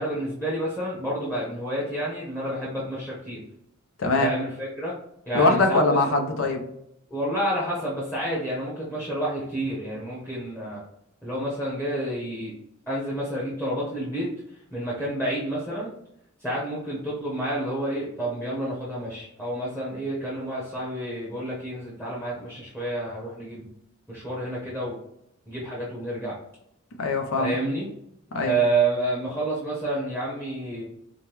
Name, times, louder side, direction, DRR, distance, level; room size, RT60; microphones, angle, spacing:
voice 1, 0.0-3.4 4.2-5.0 5.3-6.0 7.1-10.8 11.2-12.5 12.9-14.3 14.7-15.9 16.4-23.7 24.1-25.0 25.5-26.4 27.4-27.9 28.4-30.8, right 1 dB, 5° left, -6 dB, 0.9 m, -29 dB
voice 2, 4.0-4.3 5.3-6.6 27.0-27.5 28.3-28.6, left 2 dB, 75° left, 4 dB, 0.6 m, -22 dB
5.0 x 2.2 x 2.9 m, 0.80 s
head